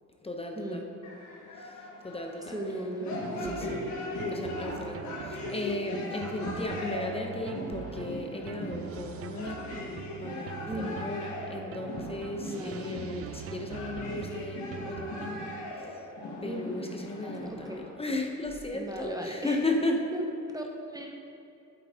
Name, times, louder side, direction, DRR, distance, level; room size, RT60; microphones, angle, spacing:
voice 1, 0.2-0.9 1.6-2.6 3.4-3.8 4.3-9.7 10.2-16.0 16.4-20.0, left 2 dB, 20° left, 2 dB, 0.8 m, -35 dB
sound 1, 1.0-17.9, left 2 dB, 70° left, 1.5 m, -39 dB
voice 2, 2.5-3.8 10.7-11.0 12.4-12.9 16.4-16.8 17.5-17.9 18.7-19.6 19.9-21.2, right 1 dB, 10° right, 1 dB, 0.8 m, -37 dB
sound 2, 3.2-15.7, right 9 dB, 50° right, 0.4 m, -43 dB
8.7 x 8.0 x 3.6 m, 2.6 s
cardioid pair, 90°, 30 cm